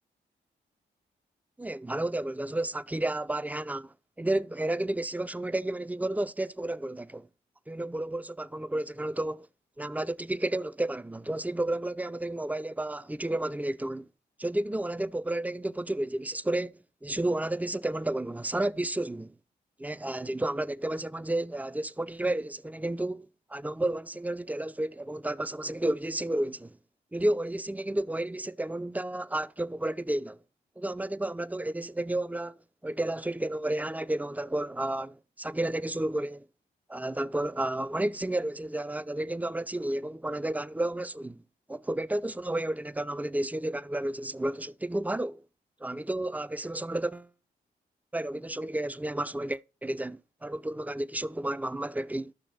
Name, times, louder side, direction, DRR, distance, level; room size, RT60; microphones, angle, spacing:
voice 1, 1.6-7.3 7.7-9.5 9.8-14.1 14.4-16.7 17.0-19.3 19.8-23.3 23.5-26.7 27.1-30.4 30.8-32.6 32.8-36.5 36.9-41.4 41.7-45.4 45.8-47.3 48.1-52.3, right 1 dB, 5° right, 0.5 m, -31 dB
12.0 x 6.3 x 4.0 m
supercardioid pair, 40°, 21 cm